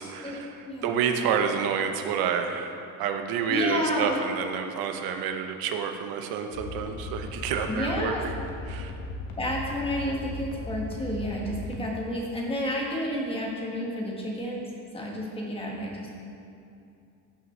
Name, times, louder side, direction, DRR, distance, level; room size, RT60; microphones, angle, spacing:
voice 1, 0.0-8.3 8.7-8.9, right 7 dB, 70° right, 5 dB, 0.9 m, -29 dB
voice 2, 3.5-4.2 7.7-8.2 9.4-14.7 14.9-16.1, equal, 15° left, -2 dB, 1.3 m, -30 dB
sound 1, 6.5-11.8, left 3 dB, 65° left, 1.5 m, -37 dB
14.5 x 6.1 x 3.2 m, 2.6 s
cardioid pair, 165°, 37 cm